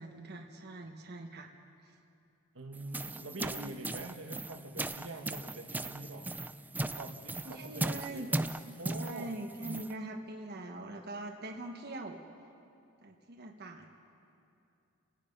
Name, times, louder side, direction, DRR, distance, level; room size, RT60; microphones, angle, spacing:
voice 1, 0.0-1.5 1.8-1.9 3.6-3.8 7.4-8.3 8.6-12.2 13.0-14.0, right 2 dB, 50° right, 2 dB, 1.3 m, -43 dB
voice 2, 2.5-6.3 6.7-8.5 8.8-9.3, right 2 dB, 65° right, 3 dB, 1.4 m, -45 dB
sound 1, 2.7-9.9, right 2 dB, 10° right, 0.4 m, -38 dB
29.5 x 17.0 x 5.4 m, 2.7 s
head